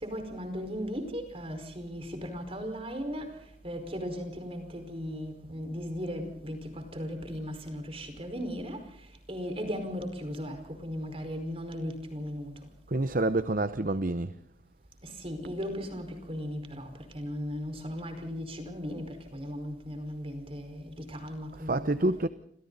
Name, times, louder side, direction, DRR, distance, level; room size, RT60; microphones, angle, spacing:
voice 1, 0.0-3.2 3.6-6.6 6.9-8.8 9.3-10.6 10.8-12.5 15.2-16.9 17.1-19.0 19.3-22.1, equal, 30° right, 5.0 m, -37 dB
voice 2, 12.9-14.3 21.7-22.3, right 2 dB, 45° right, 0.9 m, -27 dB
29.5 x 26.5 x 4.1 m
head